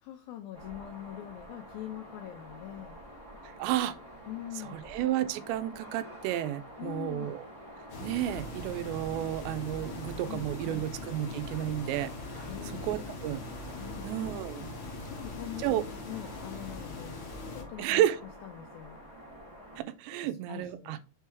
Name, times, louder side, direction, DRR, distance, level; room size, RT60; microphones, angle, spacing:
voice 1, 0.0-3.0 4.3-4.8 6.8-7.4 10.3-10.9 12.5-13.4 13.8-14.1 15.1-18.0 18.4-19.0 20.2-21.0, left 12 dB, 85° left, 2.1 m, -43 dB
sound 1, 0.5-19.8, equal, 15° right, 2.4 m, -48 dB
voice 2, 3.6-4.0 4.7-7.4 8.0-12.4 12.8-13.4 14.0-14.7 15.6-15.8 17.8-18.2 19.8-21.0, right 12 dB, 85° right, 2.9 m, -31 dB
sound 2, 7.9-17.6, left 2 dB, 55° left, 2.2 m, -41 dB
6.6 x 4.6 x 3.4 m
omnidirectional pair, 5.0 m